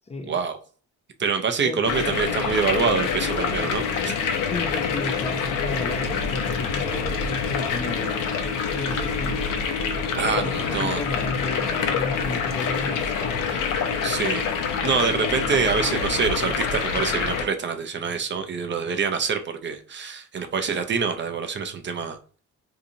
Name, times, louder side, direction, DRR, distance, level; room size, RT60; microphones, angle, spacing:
voice 1, 0.3-0.6 1.2-4.1 10.2-11.0 14.0-14.4 14.8-22.2, right 5 dB, 35° right, 0.5 m, -26 dB
sound 1, 1.8-17.4, left 6 dB, 75° left, 0.7 m, -26 dB
voice 2, 4.4-8.3 8.7-9.6 10.4-13.5, left 3 dB, 20° left, 0.5 m, -33 dB
3.8 x 2.7 x 2.6 m
cardioid pair, 115°, 32 cm